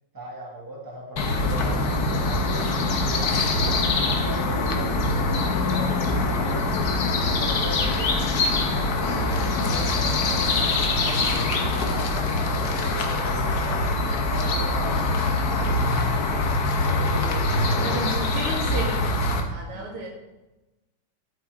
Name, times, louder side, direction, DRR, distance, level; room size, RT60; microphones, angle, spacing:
voice 1, 0.1-6.6 7.2-8.1 8.7-15.3 16.8-18.3 19.6-19.9, right 1 dB, 10° right, -3 dB, 2.2 m, -38 dB
sound 1, 1.2-19.4, left 2 dB, 50° left, 1.5 m, -24 dB
voice 2, 17.4-19.0 19.5-20.1, right 3 dB, 90° right, -2 dB, 3.3 m, -33 dB
12.5 x 8.6 x 3.7 m, 1.0 s
omnidirectional pair, 2.4 m